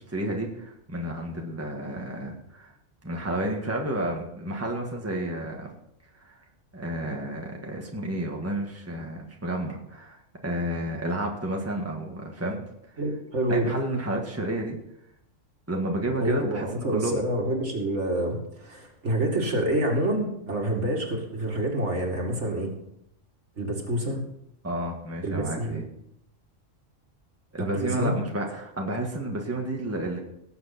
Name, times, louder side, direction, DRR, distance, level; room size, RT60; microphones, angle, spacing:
voice 1, 0.1-2.7 3.0-5.7 6.1-6.4 6.7-12.6 13.5-14.8 15.7-17.2 24.6-25.8 27.5-30.2, right 1 dB, 10° right, 1 dB, 1.7 m, -31 dB
voice 2, 13.0-13.7 16.2-22.7 23.6-24.2 25.2-25.8 27.6-28.2, right 1 dB, 60° right, 0 dB, 2.7 m, -27 dB
18.5 x 7.9 x 4.3 m, 0.77 s
omnidirectional pair, 1.3 m